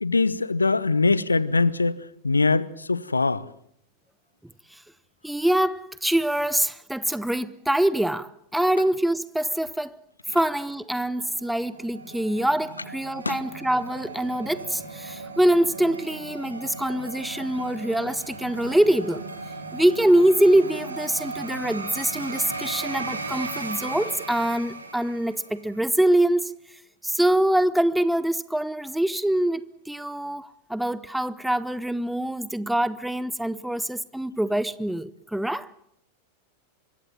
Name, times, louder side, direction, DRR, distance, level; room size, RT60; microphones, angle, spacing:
voice 1, 0.0-3.4 13.2-13.4, left 3 dB, 80° left, 1.0 m, -22 dB
voice 2, 5.2-9.9 10.3-19.2 19.7-26.6 27.0-35.7, right 1 dB, 5° right, 0.9 m, -24 dB
sound 1, 11.0-25.7, right 3 dB, 80° right, 3.6 m, -37 dB
25.5 x 23.0 x 7.5 m
figure-of-eight pair, 90°, 0 cm